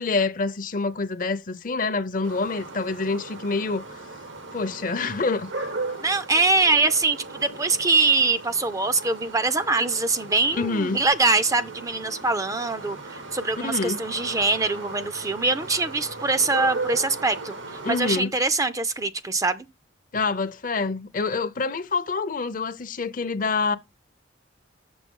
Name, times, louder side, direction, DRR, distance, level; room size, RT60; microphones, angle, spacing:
voice 1, 0.0-4.0 4.5-5.5 10.5-11.0 13.6-14.0 17.8-18.3 20.1-23.8, left 4 dB, 45° left, 0.6 m, -26 dB
sound 1, 2.2-18.2, right 3 dB, 80° right, 1.4 m, -37 dB
voice 2, 6.0-17.5 17.9-19.7, right 3 dB, 15° right, 0.4 m, -23 dB
7.5 x 6.1 x 3.6 m
head